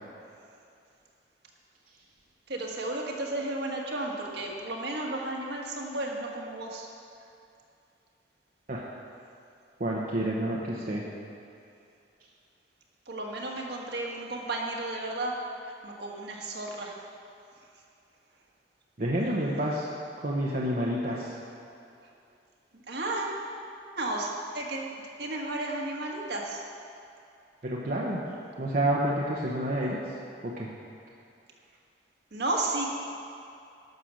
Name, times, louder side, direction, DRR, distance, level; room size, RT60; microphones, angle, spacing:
voice 1, 2.5-6.9 13.1-15.4 15.8-16.9 22.9-23.4 24.0-24.3 24.5-24.9 25.2-26.6 32.3-32.9, right 2 dB, 65° right, -1 dB, 1.5 m, -33 dB
voice 2, 9.8-11.0 19.0-19.9 20.2-21.3 27.6-28.2 28.6-30.0 30.4-30.7, right 1 dB, 50° right, -4 dB, 1.0 m, -29 dB
12.0 x 6.8 x 6.4 m, 2.6 s
head